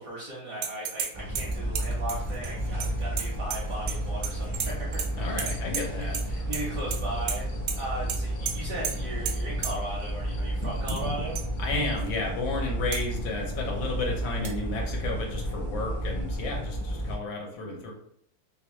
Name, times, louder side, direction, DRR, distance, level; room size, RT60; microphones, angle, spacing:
voice 1, 0.0-7.5 7.8-11.4, right 1 dB, 55° right, -5 dB, 1.0 m, -37 dB
sound 1, 0.6-1.1 1.4-4.0 4.2-5.1 5.4-6.2 6.5-7.0 7.3-7.4 7.7-7.8 8.1-8.2 8.5-8.6 8.8-8.9 9.3-9.4 9.6-9.7 10.6-11.0 11.4-11.5 12.0-12.1 12.9-13.0 14.4-14.5, right 7 dB, 75° right, 1.3 m, -32 dB
sound 2, 1.1-17.2, right 1 dB, 20° right, 0.7 m, -32 dB
sound 3, 4.6-12.1, left 3 dB, 85° left, 1.5 m, -43 dB
voice 2, 5.2-6.2 11.6-17.9, left 2 dB, 70° left, 0 dB, 1.4 m, -32 dB
3.5 x 3.0 x 3.0 m, 0.68 s
omnidirectional pair, 2.3 m